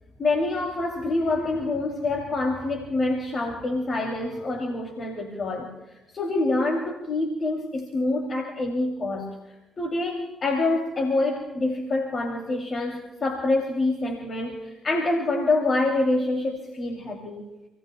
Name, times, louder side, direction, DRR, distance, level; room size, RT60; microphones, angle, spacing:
voice 1, 0.2-9.4 9.8-17.5, left 2 dB, 45° left, 2 dB, 2.9 m, -26 dB
28.5 x 19.0 x 2.3 m, 0.99 s
hypercardioid pair, 45°, 0 cm